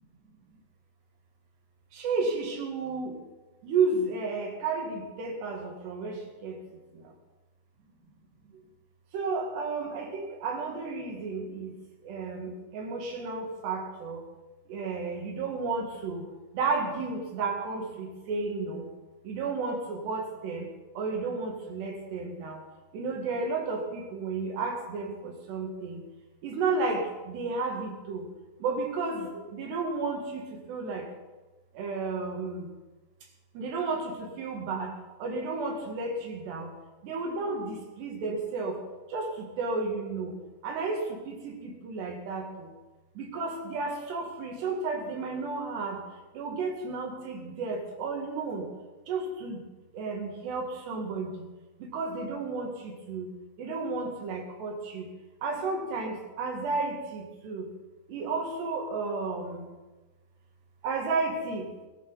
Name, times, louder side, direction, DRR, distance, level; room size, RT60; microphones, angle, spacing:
voice 1, 1.9-3.2 3.6-6.6 9.1-11.7 12.0-14.2 14.7-16.3 16.5-18.9 19.3-20.7 21.0-22.6 22.9-26.0 26.4-28.3 28.6-31.1 31.8-32.7 33.6-34.9 35.2-36.7 37.0-38.8 39.1-40.4 40.6-42.7 43.2-46.0 46.4-48.6 49.1-49.6 49.9-51.4 51.9-53.3 53.6-55.1 55.4-57.7 58.1-59.7 60.8-61.7, right 4 dB, 65° right, 1 dB, 4.1 m, -32 dB
20.0 x 13.0 x 4.1 m, 1.2 s
omnidirectional pair, 5.4 m